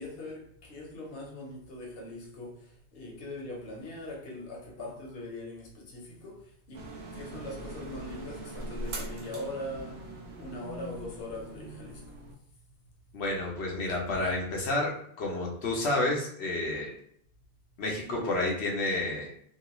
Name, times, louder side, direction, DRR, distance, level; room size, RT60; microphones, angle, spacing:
voice 1, 0.0-12.2, left 1 dB, 65° left, 1.0 m, -41 dB
sound 1, 6.7-12.3, right 1 dB, 85° right, 0.9 m, -41 dB
voice 2, 13.1-14.9 15.2-16.9 17.8-19.3, left 2 dB, 90° left, 1.0 m, -30 dB
2.9 x 2.4 x 3.0 m
omnidirectional pair, 1.1 m